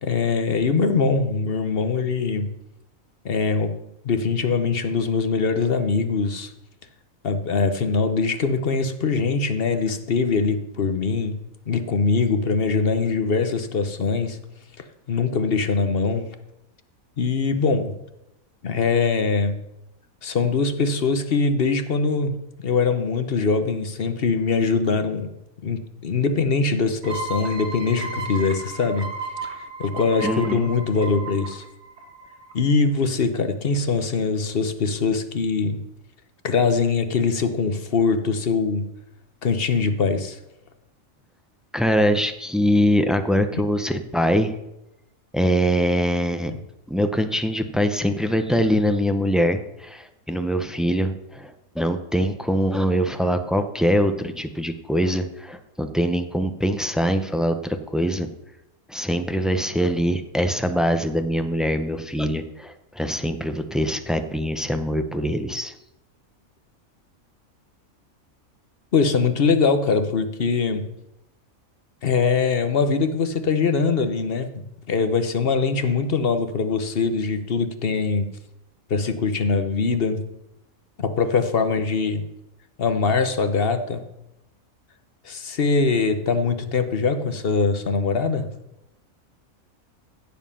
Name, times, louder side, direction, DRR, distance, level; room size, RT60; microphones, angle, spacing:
voice 1, 0.0-2.5 3.2-3.8 4.0-6.5 7.2-11.4 11.7-14.4 15.1-16.3 17.2-17.9 18.6-19.6 20.2-25.3 25.6-29.1 29.8-31.7 32.5-35.8 36.4-38.9 39.4-40.4 43.5-43.6 46.5-46.6 68.9-70.9 72.0-78.3 78.9-80.2 81.0-82.2 82.8-84.0 85.2-88.5, left 4 dB, 45° left, 9 dB, 1.1 m, -22 dB
sound 1, 27.0-32.5, right 3 dB, 50° right, 1.9 m, -34 dB
voice 2, 30.2-30.7 41.7-44.5 45.3-46.5 46.9-58.3 58.9-65.7, equal, ahead, 8 dB, 0.4 m, -23 dB
15.0 x 7.5 x 5.7 m, 0.91 s
omnidirectional pair, 1.4 m